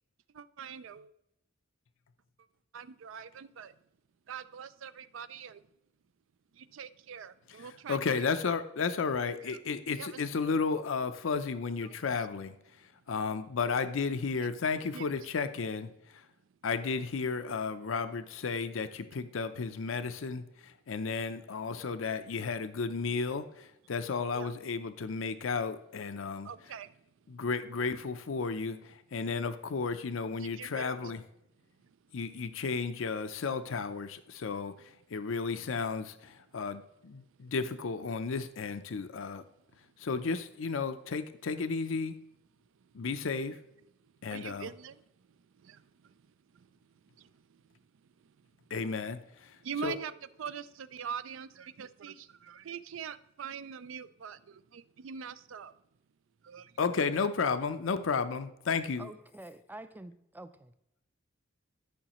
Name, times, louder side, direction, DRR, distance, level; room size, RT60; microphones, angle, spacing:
voice 1, 0.3-1.1 2.7-3.8 4.3-5.7 6.5-8.3 10.0-10.1 11.8-12.0 14.4-14.5 14.9-15.1 24.3-24.5 26.4-27.0 30.4-30.9 31.8-32.2 37.4-37.5 40.0-40.1 42.7-43.0 44.0-47.9 48.2-48.7 49.6-50.1 50.4-55.7 56.4-56.8, right 7 dB, 70° right, 0.4 m, -44 dB
voice 2, 7.5-16.3 16.6-26.7 27.3-31.2 32.1-39.4 39.8-42.2 42.9-43.6 44.2-44.7 48.7-50.0 56.8-59.1, left 5 dB, 75° left, 0.5 m, -33 dB
voice 3, 59.0-60.7, right 1 dB, 10° right, 0.4 m, -47 dB
13.0 x 5.6 x 3.0 m
head